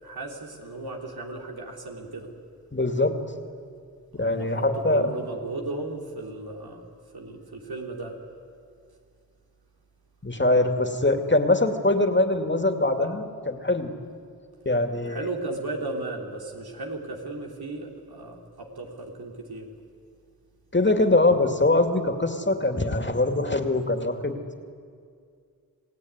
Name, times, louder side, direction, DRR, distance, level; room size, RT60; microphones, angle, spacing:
voice 1, 0.0-2.3 4.2-4.6 4.9-6.9 7.1-8.1 15.1-19.7, right 2 dB, 80° right, 0 dB, 3.5 m, -35 dB
voice 2, 2.7-3.2 4.1-5.1 10.2-13.9 14.7-15.2 20.7-24.4, left 2 dB, 30° left, 5 dB, 2.5 m, -23 dB
28.0 x 17.5 x 9.7 m, 2.2 s
cardioid pair, 50°, 37 cm